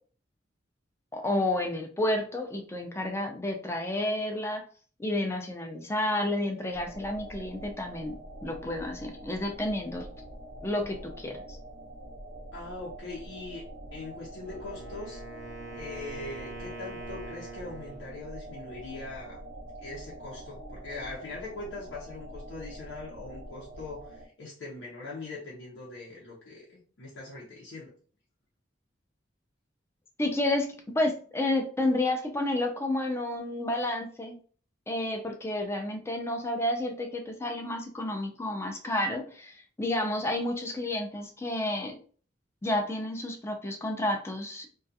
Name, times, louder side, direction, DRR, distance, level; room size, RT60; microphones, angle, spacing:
voice 1, 1.1-4.7 5.0-8.2 8.4-10.1 10.6-11.6 30.2-34.4 34.9-42.0 42.6-44.8, left 1 dB, 15° left, 4 dB, 0.3 m, -30 dB
sound 1, 6.7-24.3, right 1 dB, 90° right, 0.5 m, -45 dB
voice 2, 12.5-13.6 13.9-15.2 15.7-19.4 19.8-27.9, left 3 dB, 80° left, -5 dB, 0.7 m, -41 dB
Wind instrument woodwind instrument, 14.3-18.2, right 3 dB, 35° left, 0.8 m, -44 dB
2.4 x 2.3 x 2.6 m, 0.43 s
head